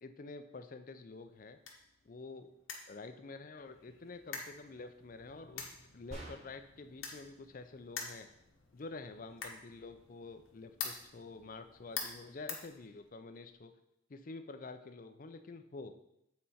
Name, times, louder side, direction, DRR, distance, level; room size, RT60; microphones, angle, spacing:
voice 1, 0.0-1.6 2.0-2.5 2.9-8.3 8.7-13.7 14.1-15.9, left 3 dB, 40° left, 9 dB, 0.5 m, -48 dB
sound 1, 1.1-13.4, left 6 dB, 75° left, 1.2 m, -48 dB
sound 2, 6.1-6.8, right 1 dB, 35° right, 1.6 m, -48 dB
7.6 x 4.3 x 4.2 m, 0.80 s
head